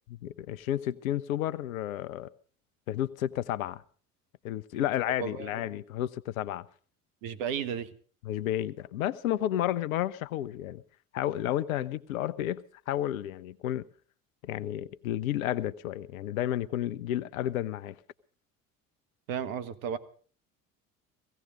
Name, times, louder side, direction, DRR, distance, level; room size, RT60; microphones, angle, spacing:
voice 1, 0.1-2.3 2.9-3.8 4.4-6.6 8.2-10.8 11.1-13.8 14.4-18.0, left 12 dB, 80° left, 0.8 m, -31 dB
voice 2, 5.2-5.7 7.2-7.9 19.3-20.0, right 8 dB, 75° right, 1.5 m, -34 dB
17.5 x 16.0 x 5.1 m
hypercardioid pair, 65°, 41 cm